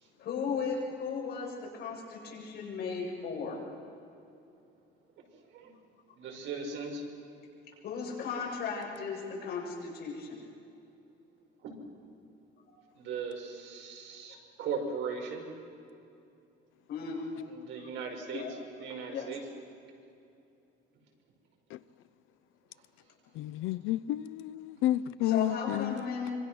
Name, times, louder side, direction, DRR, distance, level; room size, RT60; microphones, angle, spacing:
voice 1, 0.2-3.6 7.8-10.4 16.9-17.4 18.3-18.5 19.1-19.3 25.2-26.4, left 5 dB, 50° left, 7.6 m, -36 dB
voice 2, 6.1-7.0 11.6-11.8 13.0-15.4 17.5-18.4 18.8-19.4, right 5 dB, 65° right, 5.4 m, -38 dB
voice 3, 23.4-26.0, left 13 dB, 70° left, 0.6 m, -31 dB
26.0 x 24.5 x 6.2 m
cardioid pair, 160°, 21 cm